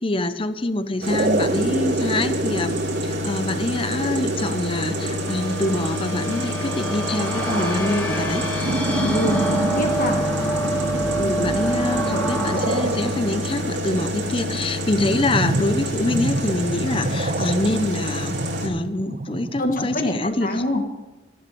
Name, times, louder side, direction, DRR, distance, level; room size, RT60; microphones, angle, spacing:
voice 1, 0.0-8.4 11.2-18.3 18.6-20.6, left 2 dB, 30° left, 11 dB, 0.8 m, -25 dB
sound 1, 1.0-18.7, left 1 dB, 80° right, 2.6 m, -28 dB
sound 2, 1.1-20.3, right 2 dB, 45° right, 0.7 m, -29 dB
sound 3, 4.4-14.7, right 1 dB, 10° left, 1.6 m, -28 dB
voice 2, 8.9-10.2 19.6-20.8, left 1 dB, 45° left, 2 dB, 1.5 m, -25 dB
13.5 x 10.5 x 7.0 m, 1.0 s
head